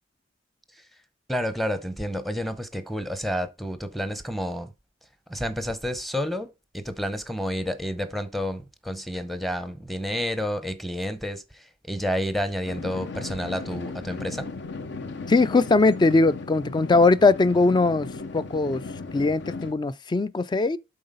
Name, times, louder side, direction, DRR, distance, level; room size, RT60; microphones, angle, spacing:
voice 1, 1.3-4.7 5.3-6.5 6.7-14.5, equal, ahead, 0.7 m, -30 dB
sound 1, 12.6-19.7, left 3 dB, 60° left, 0.7 m, -36 dB
voice 2, 15.3-18.1 18.3-18.8 19.1-20.8, left 3 dB, 25° left, 0.3 m, -20 dB
7.8 x 3.9 x 5.3 m
head